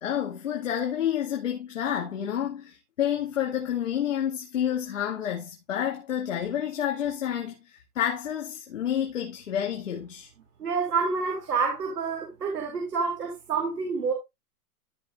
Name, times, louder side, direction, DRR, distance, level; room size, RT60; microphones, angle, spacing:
voice 1, 0.0-7.5 8.0-10.3, left 10 dB, 55° left, 2.1 m, -29 dB
voice 2, 10.6-14.1, right 5 dB, 85° right, 3.2 m, -28 dB
15.0 x 5.1 x 2.5 m
hypercardioid pair, 180°, 46 cm